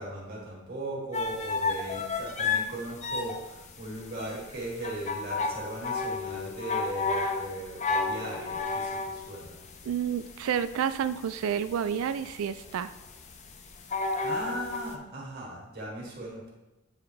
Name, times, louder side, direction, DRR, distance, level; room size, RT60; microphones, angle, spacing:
voice 1, 0.0-9.6 14.2-16.5, right 1 dB, 45° right, -3 dB, 1.8 m, -38 dB
sound 1, 1.1-14.9, left 4 dB, 30° left, 0.5 m, -32 dB
voice 2, 9.8-12.9, right 8 dB, 65° right, 14 dB, 0.3 m, -30 dB
9.0 x 3.5 x 3.2 m, 1.0 s
head